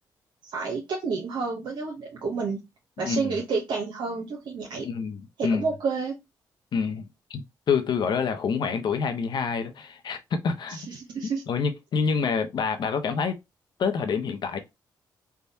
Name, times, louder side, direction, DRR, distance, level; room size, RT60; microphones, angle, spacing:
voice 1, 0.4-2.6 3.0-4.9 5.4-6.1 10.7-11.4, right 4 dB, 70° right, 0.7 m, -30 dB
voice 2, 3.0-3.4 4.8-5.7 6.7-10.8 11.5-13.4 13.8-14.6, left 5 dB, 60° left, 0.7 m, -27 dB
3.4 x 2.2 x 2.7 m
cardioid pair, 70°, 8 cm